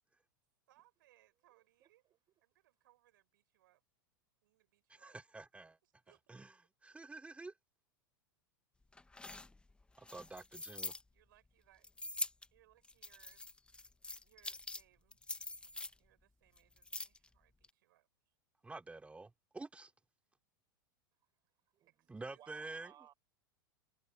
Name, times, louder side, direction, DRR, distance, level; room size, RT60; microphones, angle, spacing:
voice 1, 0.7-2.0 2.4-3.8 4.4-5.2 6.1-6.2 11.1-12.1 12.5-13.4 14.2-15.2 16.0-18.1 21.9-22.8, right 15 dB, 70° right, 5.6 m, -70 dB
voice 2, 1.5-1.9 21.7-23.1, right 12 dB, 35° right, 5.9 m, -62 dB
voice 3, 4.9-5.8 6.3-6.5 6.8-7.5 10.0-11.0 18.6-19.9 22.1-22.9, right 3 dB, 10° right, 2.7 m, -49 dB
sound 1, 8.9-11.0 11.8-12.5 12.8-14.8 15.1-15.9 16.6-17.3 17.6-17.7, left 2 dB, 10° left, 1.3 m, -44 dB
hypercardioid pair, 95°, 12 cm